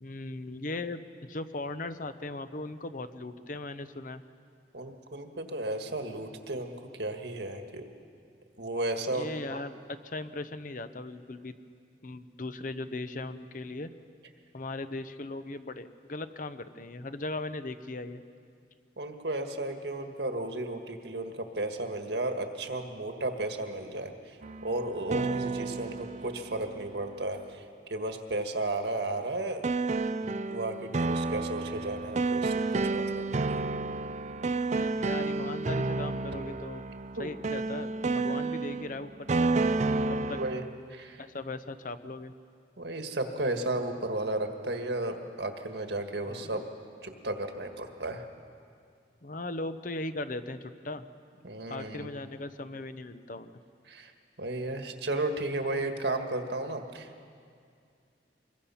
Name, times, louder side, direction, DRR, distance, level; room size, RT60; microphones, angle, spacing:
voice 1, 0.0-4.2 9.1-11.6 12.0-13.9 14.5-18.2 34.7-36.9 37.2-39.5 40.1-40.4 41.2-42.3 46.3-46.5 49.2-51.1 51.7-53.6, left 2 dB, 45° left, 11 dB, 0.8 m, -38 dB
voice 2, 4.7-7.9 8.6-9.3 19.0-24.4 24.6-29.7 30.2-33.6 37.2-37.3 39.9-40.6 40.9-41.2 42.8-46.6 47.0-48.3 51.4-52.1 53.9-54.1 54.4-57.3, right 2 dB, 70° right, 5 dB, 1.7 m, -34 dB
sound 1, 24.4-27.3 29.6-40.7, right 3 dB, 40° right, 0.5 m, -31 dB
25.0 x 21.5 x 5.7 m, 2.3 s
head